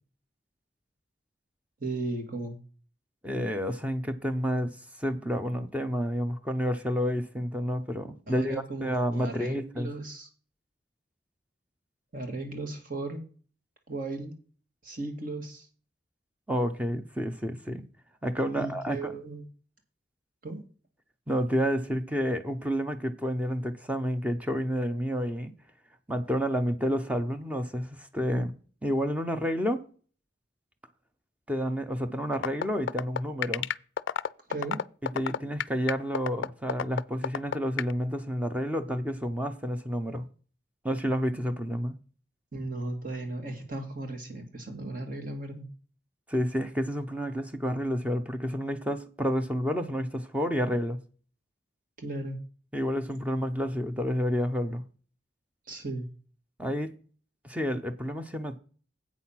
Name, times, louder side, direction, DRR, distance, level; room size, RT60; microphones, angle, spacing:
voice 1, 1.8-2.6 8.3-10.3 12.1-13.2 13.9-14.4 14.8-15.7 18.6-19.5 20.4-20.6 34.5-34.8 42.5-45.7 52.0-52.4 55.7-56.1, right 2 dB, 50° right, 2.0 m, -36 dB
voice 2, 3.2-4.7 5.0-9.9 16.5-17.8 18.2-19.2 21.3-25.5 26.1-28.5 28.8-29.9 31.5-33.7 35.0-40.3 40.8-41.9 46.3-51.0 52.7-54.8 56.6-56.9 57.4-58.6, equal, 10° right, 0.7 m, -30 dB
sound 1, 32.3-37.9, left 8 dB, 85° left, 0.4 m, -29 dB
8.2 x 6.3 x 5.7 m
head